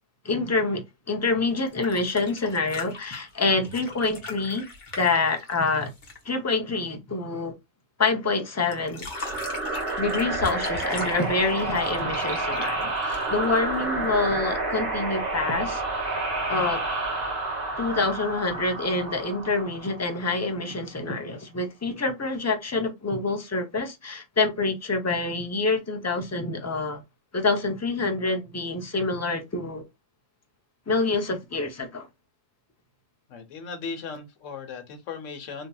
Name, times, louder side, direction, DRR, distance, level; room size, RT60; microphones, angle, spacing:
voice 1, 0.2-4.6 5.0-5.9 6.2-7.5 8.0-9.4 10.0-15.8 16.5-16.8 17.8-27.0 27.3-29.8 30.9-32.1, left 3 dB, 25° left, 0.3 m, -26 dB
sound 1, 1.6-6.3 8.7-13.6 15.0-15.1, left 3 dB, 40° left, 1.1 m, -39 dB
sound 2, 9.1-20.4, right 2 dB, 50° right, 1.4 m, -29 dB
voice 2, 33.3-35.7, left 5 dB, 75° left, 1.2 m, -37 dB
3.6 x 2.7 x 2.2 m
omnidirectional pair, 1.3 m